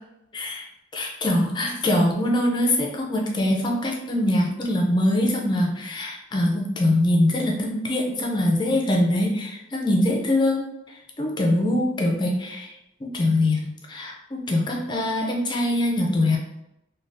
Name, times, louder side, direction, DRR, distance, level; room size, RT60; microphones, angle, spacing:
voice 1, 0.3-0.6 0.9-10.7 11.2-12.7 13.0-16.4, left 1 dB, 25° left, 0 dB, 0.4 m, -23 dB
3.3 x 2.2 x 2.5 m, 0.87 s
head